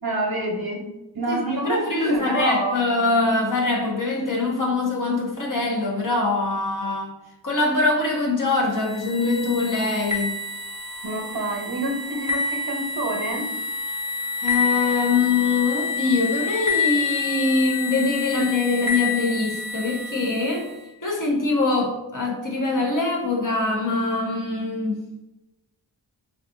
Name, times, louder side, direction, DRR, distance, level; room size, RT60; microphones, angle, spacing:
voice 1, 0.0-0.8 1.1-2.8 11.0-13.5, right 2 dB, 55° right, 1 dB, 0.8 m, -27 dB
voice 2, 1.3-7.1 7.4-10.3 14.4-20.7 21.0-25.0, left 3 dB, 45° left, -1 dB, 1.0 m, -23 dB
sound 1, 8.7-20.8, left 4 dB, 15° left, 1.1 m, -28 dB
4.0 x 2.5 x 2.6 m, 0.96 s
wide cardioid pair, 65°, 45 cm